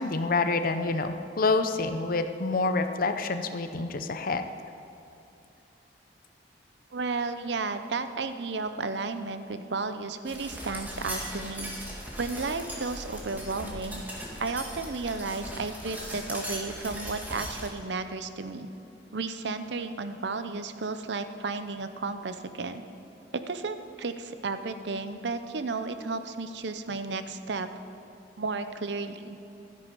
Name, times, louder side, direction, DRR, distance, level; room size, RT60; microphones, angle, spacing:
voice 1, 0.0-4.4, left 3 dB, 50° left, 8 dB, 0.7 m, -27 dB
voice 2, 6.9-11.7 12.2-14.0 14.4-18.7 19.1-22.9 23.3-27.7 28.4-29.4, right 3 dB, 70° right, 10 dB, 0.7 m, -33 dB
sound 1, 10.2-17.7, equal, 10° right, 2.1 m, -39 dB
12.5 x 10.0 x 5.4 m, 2.9 s
head